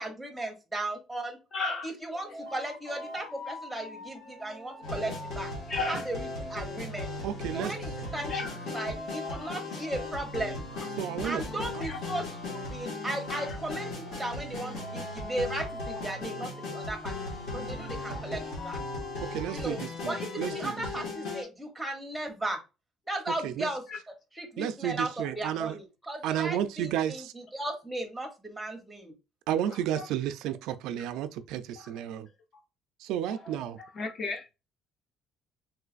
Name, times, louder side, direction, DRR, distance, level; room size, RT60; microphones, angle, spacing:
voice 1, 0.0-1.4 1.8-5.5 5.9-7.1 7.5-10.6 11.2-18.8 19.5-19.8 20.1-22.6 23.1-29.1, right 1 dB, 5° right, 0.8 m, -36 dB
voice 2, 1.5-1.9 5.7-6.0 8.3-8.5 11.8-12.0 13.3-13.4 29.9-30.0 34.0-34.4, left 3 dB, 30° left, 0.5 m, -32 dB
sound 1, 2.2-19.6, left 1 dB, 45° left, 1.3 m, -45 dB
sound 2, 4.8-21.4, left 2 dB, 65° left, 1.5 m, -38 dB
voice 3, 7.2-7.8 11.0-11.4 18.1-18.4 19.3-21.1 23.4-23.7 24.6-25.8 26.2-27.3 29.5-32.3 33.0-33.8, right 10 dB, 70° right, 0.3 m, -32 dB
3.2 x 3.0 x 2.4 m
cardioid pair, 175°, 0 cm